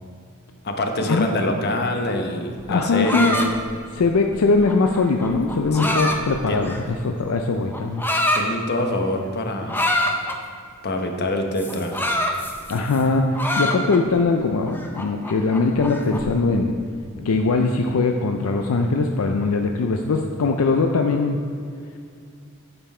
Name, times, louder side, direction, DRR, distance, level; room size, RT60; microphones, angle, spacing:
voice 1, 0.6-3.5 5.7-6.0 6.5-6.6 8.3-9.8 10.8-12.1 17.2-17.3, left 1 dB, 50° left, 4 dB, 0.9 m, -25 dB
sound 1, 2.6-7.0 7.7-8.5 9.7-10.4 11.6-13.0 13.3-14.2 14.7-16.3, left 1 dB, 10° left, 0.6 m, -25 dB
voice 2, 2.7-3.4 3.9-8.0 12.7-16.8 17.2-21.4, left 3 dB, 75° left, 4 dB, 0.5 m, -21 dB
8.9 x 6.9 x 4.3 m, 2.3 s
head